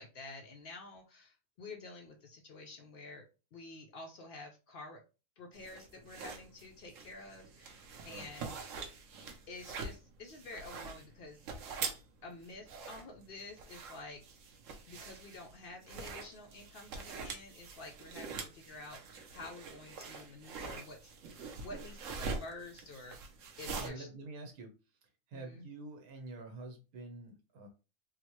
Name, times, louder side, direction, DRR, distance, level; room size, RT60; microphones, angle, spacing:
voice 1, 0.0-3.3 3.5-5.0 5.4-8.5 9.5-11.4 12.2-14.2 14.9-23.2 23.6-24.1 25.3-25.7, left 2 dB, 85° left, 2 dB, 0.4 m, -49 dB
sound 1, 5.5-23.9, right 4 dB, 65° right, 0.9 m, -44 dB
voice 2, 23.8-24.7 25.3-27.7, right 2 dB, 85° right, 3 dB, 1.4 m, -47 dB
3.7 x 2.1 x 2.9 m, 0.32 s
omnidirectional pair, 1.5 m